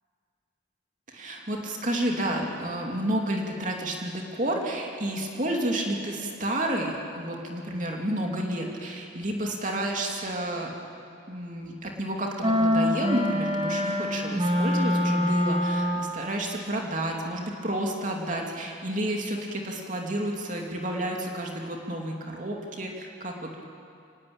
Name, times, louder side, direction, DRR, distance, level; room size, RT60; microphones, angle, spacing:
voice 1, 1.1-10.7 11.3-23.3, right 1 dB, 45° right, 0 dB, 2.8 m, -30 dB
sound 1, 12.4-16.2, left 1 dB, 30° right, 2.2 m, -25 dB
24.5 x 19.5 x 8.9 m, 2.4 s
head